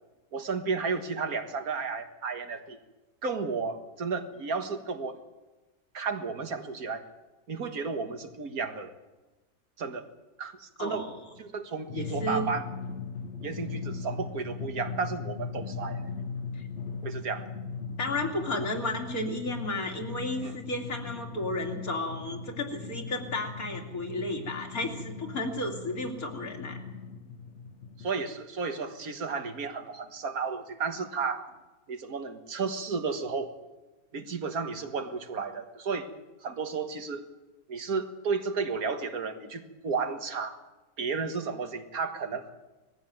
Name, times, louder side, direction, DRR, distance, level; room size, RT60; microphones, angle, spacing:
voice 1, 0.3-2.8 3.2-5.2 5.9-7.0 7.5-8.9 9.8-10.1 10.4-11.1 11.4-12.7 13.4-16.1 17.0-17.5 20.4-20.6 28.0-31.5 31.9-33.5 34.1-36.1 36.4-37.3 37.7-40.6 41.0-42.5, right 5 dB, 80° right, 8 dB, 2.0 m, -33 dB
voice 2, 10.8-11.1 12.0-12.5 16.5-16.7 18.0-26.8, left 1 dB, 75° left, 2 dB, 3.2 m, -33 dB
Drum, 11.9-28.1, left 5 dB, 55° left, 1.4 m, -39 dB
20.5 x 15.0 x 9.3 m, 1.2 s
omnidirectional pair, 1.5 m